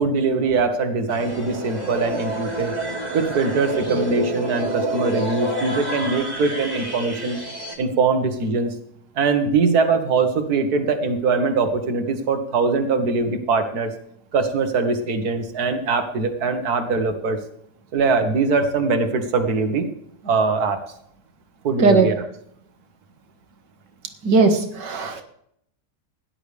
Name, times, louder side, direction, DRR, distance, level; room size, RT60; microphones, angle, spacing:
voice 1, 0.0-2.8 3.1-7.4 7.8-8.8 9.2-13.9 14.3-17.4 17.9-19.9 20.2-20.8 21.6-22.2, right 4 dB, 65° right, 7 dB, 1.9 m, -22 dB
sound 1, 1.1-7.7, right 1 dB, 25° right, 2.3 m, -28 dB
voice 2, 24.3-25.2, right 4 dB, 80° right, 6 dB, 2.1 m, -17 dB
17.0 x 11.0 x 3.4 m, 0.72 s
omnidirectional pair, 1.8 m